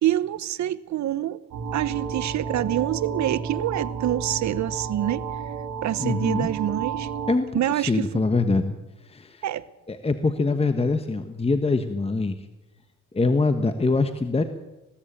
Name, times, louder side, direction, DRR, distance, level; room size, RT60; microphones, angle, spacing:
voice 1, 0.0-1.4 1.7-5.2 5.8-7.1 7.5-8.1 9.4-9.7, right 12 dB, 70° right, 1.0 m, -26 dB
sound 1, 1.5-7.3, right 6 dB, 85° right, 2.9 m, -31 dB
voice 2, 6.0-6.5 7.3-8.7 9.0-9.4 9.9-12.4 13.1-14.4, left 3 dB, 20° left, 1.4 m, -24 dB
20.5 x 17.0 x 8.9 m
cardioid pair, 90°, 30 cm